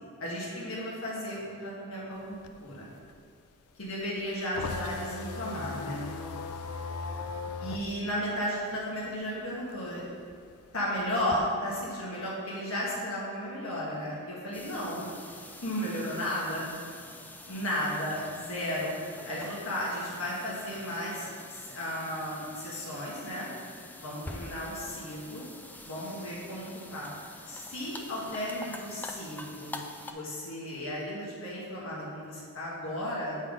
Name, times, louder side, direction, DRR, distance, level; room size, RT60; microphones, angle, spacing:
voice 1, 0.2-2.9 3.8-6.1 7.6-10.0 10.7-15.1 15.6-16.6 17.5-18.9 19.2-23.5 24.0-25.5 25.8-27.1 27.5-29.8 30.1-33.4, equal, 65° left, -6 dB, 1.5 m, -34 dB
sound 1, 2.2-9.3 9.6-11.4, left 4 dB, 80° left, 0.4 m, -38 dB
sound 2, 14.5-30.1, left 2 dB, 10° left, 0.3 m, -46 dB
8.1 x 3.8 x 5.1 m, 2.4 s
head